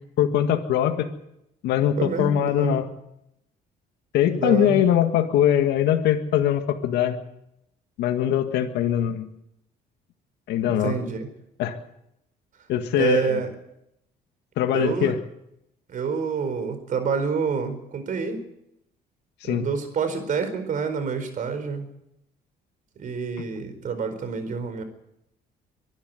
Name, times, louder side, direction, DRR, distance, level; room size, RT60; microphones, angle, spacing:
voice 1, 0.2-1.1 1.6-2.9 4.1-7.2 8.0-9.3 10.5-11.0 11.6-11.8 12.7-13.4 14.6-15.2 19.4-19.7, left 10 dB, 80° left, 6 dB, 1.9 m, -22 dB
voice 2, 2.0-2.8 4.3-4.8 10.6-11.3 12.9-13.5 14.7-15.2 15.9-18.4 19.4-21.9 23.0-24.8, right 5 dB, 50° right, 10 dB, 4.6 m, -27 dB
23.5 x 11.5 x 9.6 m, 0.81 s
cardioid pair, 110°, 17 cm